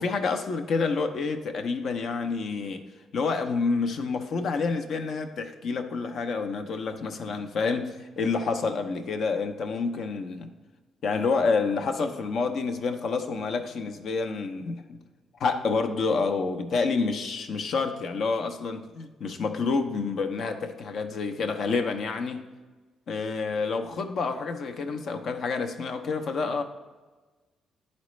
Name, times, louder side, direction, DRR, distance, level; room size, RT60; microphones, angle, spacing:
voice 1, 0.0-2.8 3.1-10.5 11.0-14.8 15.4-22.5 23.1-26.6, left 4 dB, 60° left, 7 dB, 0.7 m, -28 dB
10.5 x 4.2 x 3.1 m, 1.2 s
cardioid pair, 90°, 0 cm